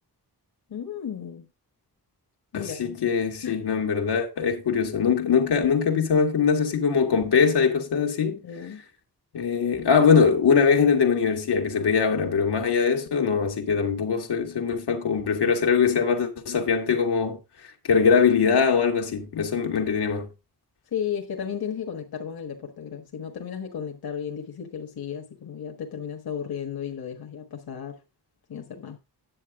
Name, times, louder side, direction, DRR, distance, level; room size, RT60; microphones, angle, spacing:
voice 1, 0.7-1.5 2.5-3.0 3.4-3.7 8.4-8.8 20.9-28.0 28.5-29.0, left 8 dB, 65° left, 1.6 m, -34 dB
voice 2, 2.5-8.4 9.3-17.4 17.9-20.3, left 6 dB, 85° left, 1.9 m, -22 dB
9.9 x 7.8 x 3.6 m
wide cardioid pair, 175°, 39 cm